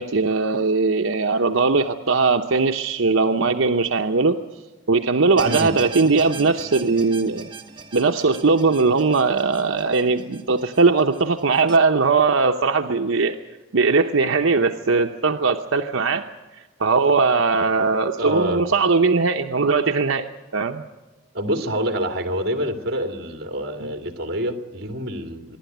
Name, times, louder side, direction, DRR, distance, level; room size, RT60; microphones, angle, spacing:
voice 1, 0.0-4.4 4.9-7.5 7.9-13.4 13.7-16.2 16.6-20.3 20.5-20.8 23.8-23.9, right 4 dB, 80° right, 5 dB, 0.8 m, -20 dB
sound 1, 5.4-11.8, right 5 dB, 25° right, 1.1 m, -38 dB
voice 2, 18.2-18.6 21.3-25.6, equal, 50° right, 5 dB, 2.2 m, -26 dB
25.0 x 11.5 x 9.3 m, 1.2 s
head